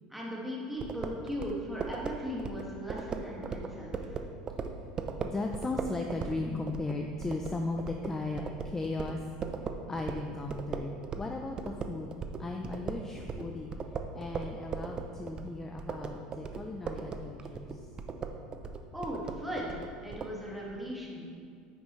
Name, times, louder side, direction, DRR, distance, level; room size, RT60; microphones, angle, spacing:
voice 1, 0.1-4.2 18.9-19.7 20.0-21.2, equal, 5° right, -5 dB, 1.8 m, -38 dB
sound 1, 0.8-11.3 11.6-20.3, right 5 dB, 30° right, 0.6 m, -38 dB
voice 2, 5.2-9.2 9.9-13.7 14.1-17.9, left 2 dB, 15° left, 3 dB, 0.5 m, -36 dB
9.6 x 6.2 x 3.1 m, 2.2 s
supercardioid pair, 120°, 3 cm